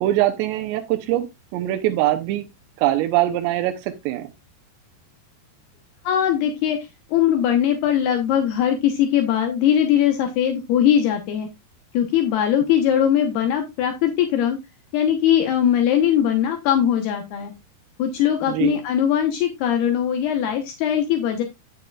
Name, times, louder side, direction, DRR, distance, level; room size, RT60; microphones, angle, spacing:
voice 1, 0.0-1.3 1.5-2.5 2.8-4.3 18.5-18.8, right 14 dB, 90° right, 3.0 m, -22 dB
voice 2, 6.0-6.8 7.1-11.5 11.9-14.6 14.9-17.5 18.0-21.4, left 9 dB, 75° left, 2.9 m, -20 dB
9.5 x 9.2 x 2.4 m
omnidirectional pair, 4.9 m